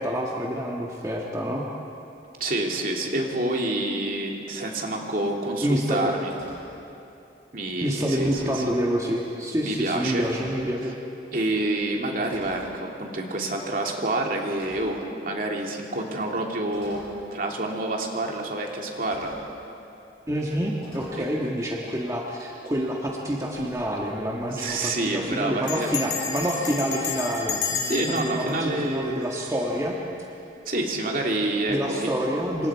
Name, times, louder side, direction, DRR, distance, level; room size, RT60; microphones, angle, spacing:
voice 1, 0.0-1.6 5.6-6.1 7.8-10.9 20.3-30.0 31.7-32.7, equal, 20° right, -2 dB, 1.7 m, -27 dB
voice 2, 2.4-6.3 7.5-8.6 9.6-10.3 10.8-10.9 11.3-17.1 17.3-19.4 21.2-21.3 24.5-25.9 27.9-29.2 30.7-32.1, right 2 dB, 50° right, 0 dB, 2.6 m, -28 dB
sound 1, 6.3-6.8 7.6-7.7 8.0-8.7 9.7-9.9 10.2-10.7 11.6-11.9 12.2-12.7 14.5-15.1 16.2-16.3 16.7-17.2 18.4-18.5 19.0-19.5 20.8-21.1, left 1 dB, 30° left, 7.3 m, -46 dB
Bell, 23.5-23.9 24.2-24.3 24.5-24.9 25.7-29.8, left 5 dB, 70° left, 3.7 m, -32 dB
27.5 x 25.5 x 4.8 m, 2.7 s
head